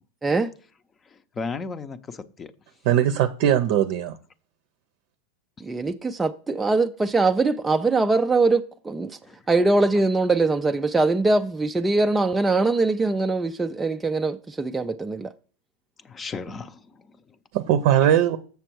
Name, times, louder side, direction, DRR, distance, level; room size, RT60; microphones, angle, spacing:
voice 1, 1.1-2.5 9.2-9.4 16.0-17.4, left 4 dB, 25° left, 0.7 m, -35 dB
voice 2, 2.8-4.2 17.5-18.4, right 10 dB, 60° right, 0.6 m, -20 dB
voice 3, 5.6-9.2 9.5-15.3, right 3 dB, 10° right, 0.4 m, -22 dB
7.0 x 6.6 x 4.6 m
hypercardioid pair, 115°, 0 cm